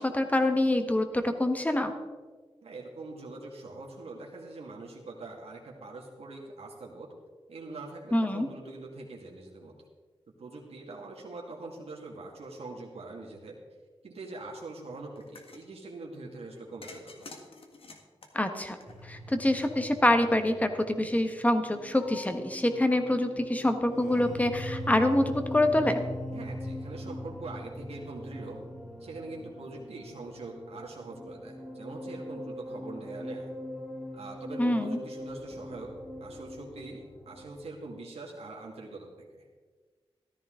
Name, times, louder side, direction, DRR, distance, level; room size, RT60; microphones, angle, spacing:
voice 1, 0.0-1.9 8.1-8.5 18.3-18.8 19.0-26.0 34.6-35.0, left 1 dB, 15° left, 7 dB, 1.3 m, -26 dB
voice 2, 2.6-7.1 7.5-9.7 10.4-13.6 14.0-17.3 26.3-28.6 29.0-33.5 34.1-35.9 36.2-39.1 39.3-39.5, right 2 dB, 90° right, -2 dB, 2.0 m, -43 dB
sound 1, 15.2-15.7 16.8-19.3, left 3 dB, 65° left, 1.7 m, -48 dB
sound 2, 18.9-37.7, equal, 5° right, 2.4 m, -41 dB
14.0 x 13.5 x 3.8 m, 1.4 s
wide cardioid pair, 100°, 10 cm